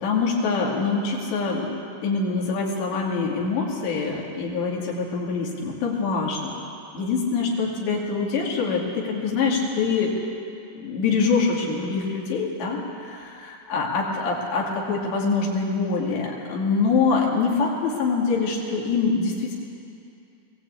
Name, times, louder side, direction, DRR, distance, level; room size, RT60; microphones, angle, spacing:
voice 1, 0.0-1.7 2.0-6.6 6.9-10.1 10.8-19.5, left 4 dB, 90° left, -3 dB, 4.8 m, -24 dB
22.0 x 17.0 x 8.5 m, 2.6 s
omnidirectional pair, 4.8 m